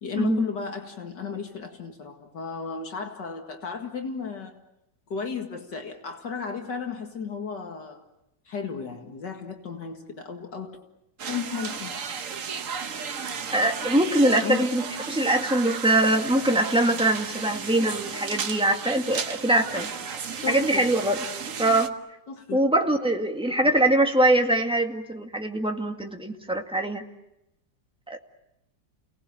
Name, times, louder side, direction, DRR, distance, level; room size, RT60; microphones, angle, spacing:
voice 1, 0.0-4.5 5.1-8.1 8.5-10.8 11.3-12.0 14.4-14.7 20.4-20.9 22.3-22.7, left 5 dB, 70° left, 4 dB, 2.6 m, -34 dB
sound 1, 11.2-21.9, right 6 dB, 50° right, 1.4 m, -34 dB
voice 2, 13.5-19.9 20.5-21.2 21.6-21.9 22.5-27.0 28.1-28.2, right 1 dB, 5° right, 3 dB, 1.8 m, -23 dB
29.5 x 19.0 x 8.8 m, 0.88 s
omnidirectional pair, 2.0 m